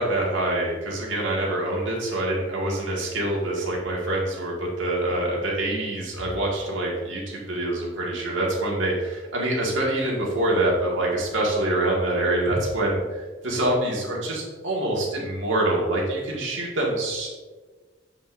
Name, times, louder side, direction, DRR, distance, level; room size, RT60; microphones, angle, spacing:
voice 1, 0.0-17.3, right 1 dB, 80° right, -3 dB, 1.8 m, -25 dB
7.7 x 5.3 x 2.6 m, 1.3 s
head